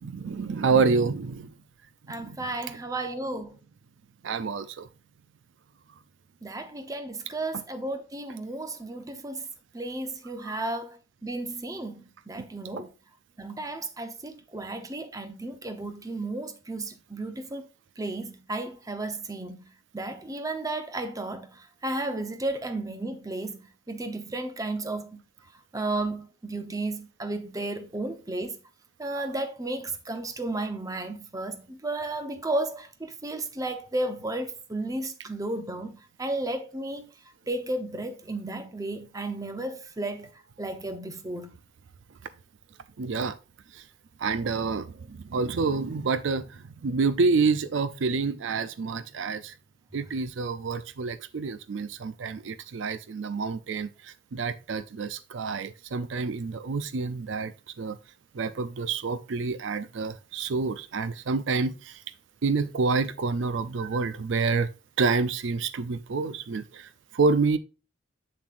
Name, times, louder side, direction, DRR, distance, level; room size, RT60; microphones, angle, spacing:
voice 1, 0.0-1.5 2.1-2.4 4.2-4.9 10.4-10.6 43.0-43.4 43.7-43.8 44.2-49.5 49.9-57.5 57.8-58.0 58.3-62.0 62.4-64.7 65.0-67.6, right 4 dB, 65° right, 0.5 m, -28 dB
voice 2, 2.1-3.6 6.4-9.5 9.7-12.9 13.4-17.7 18.0-19.7 19.9-25.1 25.7-28.6 29.0-37.1 37.5-40.3 40.6-41.5, right 2 dB, 15° right, 0.8 m, -33 dB
7.8 x 7.1 x 2.5 m
head